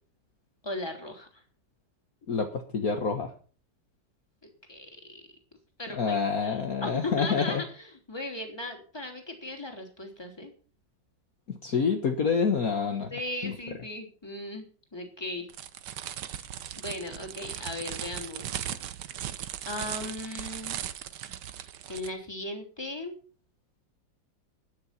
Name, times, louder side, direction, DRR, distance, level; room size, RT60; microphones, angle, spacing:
voice 1, 0.6-1.4 4.4-5.2 5.8-10.5 13.1-15.5 16.2-16.5 16.8-18.6 19.6-20.8 21.9-23.2, left 1 dB, 15° left, 3 dB, 3.1 m, -37 dB
voice 2, 2.3-3.3 5.9-7.6 11.6-13.1 13.4-13.5, left 5 dB, 55° left, 4 dB, 1.8 m, -27 dB
sound 1, 15.5-22.1, right 10 dB, 70° right, 1.5 m, -38 dB
12.5 x 9.9 x 5.9 m, 0.39 s
omnidirectional pair, 1.9 m